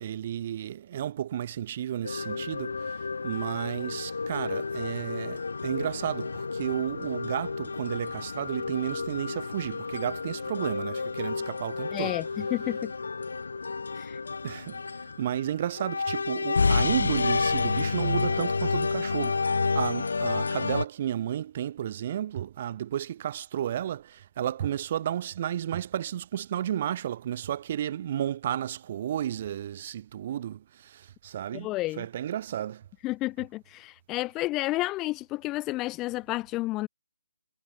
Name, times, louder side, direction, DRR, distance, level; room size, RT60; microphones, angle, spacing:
voice 1, 0.0-12.2 14.4-14.8 15.2-32.8, right 10 dB, 40° right, 1.6 m, -32 dB
sound 1, 2.0-20.9, left 4 dB, 70° left, 0.8 m, -30 dB
voice 2, 11.9-12.9 13.9-14.2 31.5-32.1 33.0-36.9, left 19 dB, 20° left, 0.9 m, -31 dB
figure-of-eight pair, 145°, 0 cm